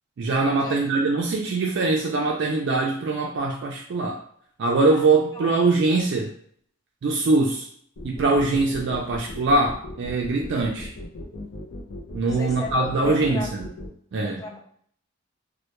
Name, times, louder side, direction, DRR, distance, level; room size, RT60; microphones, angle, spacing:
voice 1, 0.2-4.2 4.6-6.3 7.0-7.7 8.0-10.9 12.1-13.6 14.1-14.4, right 3 dB, 60° right, 0 dB, 0.3 m, -22 dB
sound 1, 8.0-13.9, left 1 dB, 70° left, 0.5 m, -37 dB
voice 2, 12.3-13.5 14.2-14.6, left 3 dB, 15° left, -3 dB, 0.3 m, -35 dB
2.1 x 2.1 x 2.9 m, 0.62 s
head